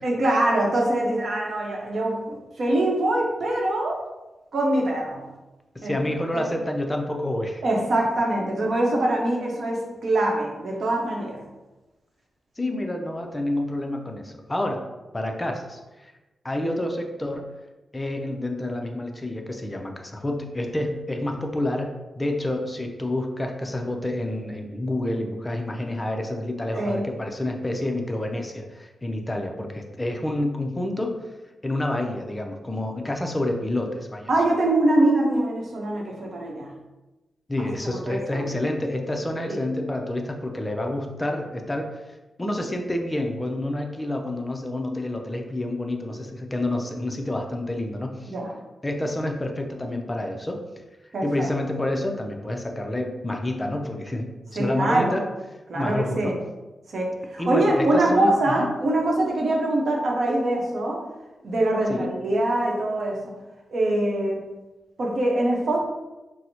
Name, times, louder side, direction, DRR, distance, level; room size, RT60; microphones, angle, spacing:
voice 1, 0.0-4.0 4.5-5.2 5.8-5.9 6.3-6.5 7.6-11.4 26.7-27.0 34.3-36.7 37.9-38.5 39.5-39.6 48.2-48.5 51.1-51.5 54.6-55.2 55.7-56.3 56.9-61.0 61.4-63.2 63.7-64.4 65.0-65.8, right 1 dB, 65° right, -2 dB, 0.8 m, -23 dB
voice 2, 5.7-7.6 12.6-14.8 15.1-16.1 16.4-17.4 17.9-31.1 31.6-34.3 37.5-42.0 42.4-48.3 48.8-50.6 51.2-55.2 55.7-56.3 57.4-58.7 61.9-62.1, left 1 dB, 20° left, 3 dB, 0.4 m, -28 dB
4.4 x 2.0 x 2.7 m, 1.1 s
cardioid pair, 90°, 0 cm